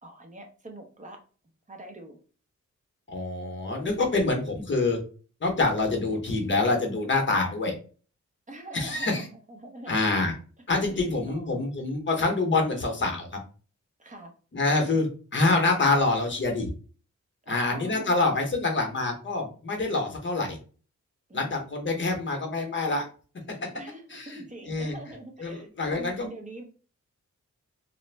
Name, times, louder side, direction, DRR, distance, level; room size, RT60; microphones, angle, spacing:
voice 1, 0.0-1.2 1.7-2.2 8.5-10.1 10.9-11.6 14.0-14.3 14.8-15.0 17.4-18.3 21.3-21.6 23.7-26.6, right 1 dB, 25° right, 2 dB, 0.6 m, -44 dB
voice 2, 3.1-5.0 5.4-7.7 8.7-9.3 9.9-10.3 10.7-13.4 14.5-15.1 15.3-16.7 17.5-20.6 21.3-23.1 24.1-24.4 24.7-25.0 25.4-26.3, left 3 dB, 40° left, 3 dB, 0.8 m, -26 dB
2.5 x 2.0 x 3.2 m, 0.39 s
wide cardioid pair, 125°, 30 cm